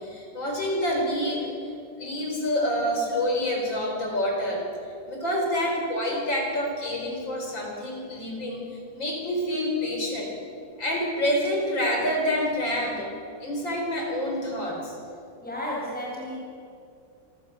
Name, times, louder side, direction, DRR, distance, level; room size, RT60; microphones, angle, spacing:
voice 1, 0.0-1.7 2.0-4.6 5.1-8.6 8.9-10.3 10.8-13.1 13.4-15.0, equal, 80° left, 0 dB, 5.7 m, -27 dB
voice 2, 15.4-16.4, left 1 dB, 5° left, -4 dB, 5.2 m, -32 dB
26.0 x 14.5 x 8.0 m, 2.4 s
omnidirectional pair, 2.1 m